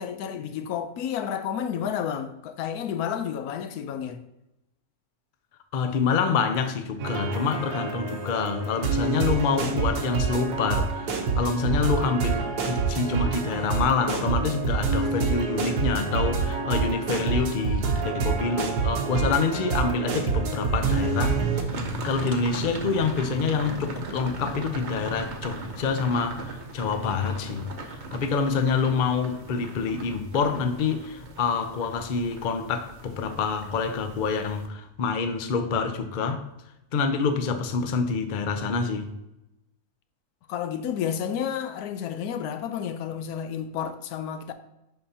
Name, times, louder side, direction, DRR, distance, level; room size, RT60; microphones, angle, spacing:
voice 1, 0.0-4.2 40.5-44.5, left 8 dB, 85° left, 1.1 m, -31 dB
voice 2, 5.7-21.7 22.0-36.5 36.9-39.1, left 5 dB, 55° left, 0.5 m, -27 dB
sound 1, 7.0-21.6, right 5 dB, 90° right, 1.3 m, -27 dB
sound 2, 21.7-34.7, right 2 dB, 40° right, 0.8 m, -38 dB
10.5 x 3.9 x 2.8 m
omnidirectional pair, 1.6 m